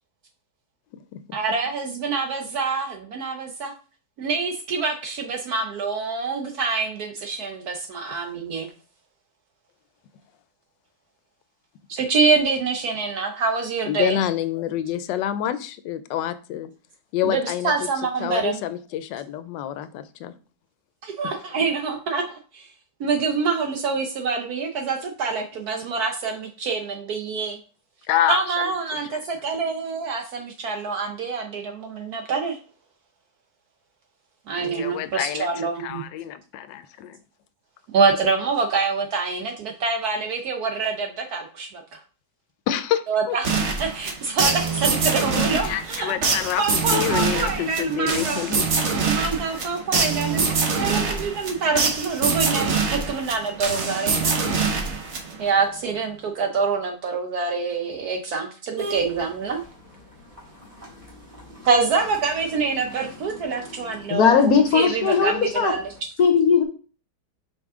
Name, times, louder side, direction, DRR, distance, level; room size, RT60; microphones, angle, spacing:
voice 1, 1.3-3.7 4.2-8.7 11.9-14.2 17.2-18.6 21.0-22.7 23.0-27.6 28.3-32.6 34.5-36.0 37.9-42.0 43.1-46.1 46.6-48.4 49.0-54.3 55.4-59.6 61.6-65.8, right 4 dB, 65° right, 1.2 m, -26 dB
voice 2, 13.9-16.7 17.1-17.7 18.2-20.3 28.1-28.4 29.1-29.2 34.6-35.5 35.8-37.2 42.7-43.0 43.3-43.4 45.5-48.7 49.5-49.6, left 11 dB, 90° left, 1.3 m, -27 dB
sound 1, 43.4-55.6, right 4 dB, 45° right, 1.1 m, -24 dB
sound 2, 58.8-66.0, equal, 25° right, 2.3 m, -42 dB
voice 3, 64.1-65.7 66.2-66.6, left 6 dB, 65° left, 1.1 m, -18 dB
5.3 x 4.9 x 3.6 m
omnidirectional pair, 1.9 m